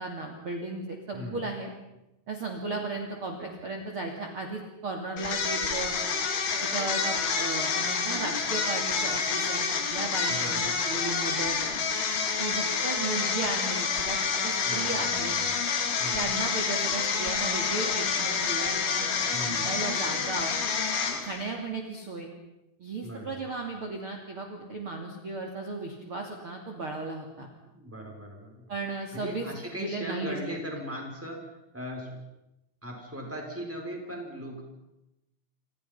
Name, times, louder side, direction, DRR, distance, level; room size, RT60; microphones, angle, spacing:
voice 1, 0.0-1.7 2.3-6.0 6.6-11.6 12.4-14.2 14.4-15.3 16.1-20.5 21.2-22.3 22.8-27.5 28.7-29.5 29.8-30.8, right 3 dB, 35° right, 1 dB, 3.0 m, -35 dB
voice 2, 1.1-1.5 10.3-10.8 14.6-15.5 16.0-16.3 19.3-19.7 23.0-23.4 27.7-28.7 29.1-31.4 31.7-32.2 32.8-34.6, equal, 5° right, 0 dB, 5.8 m, -38 dB
sound 1, 5.2-21.5, left 5 dB, 85° left, 5.3 m, -28 dB
28.5 x 27.0 x 5.7 m, 0.91 s
omnidirectional pair, 5.2 m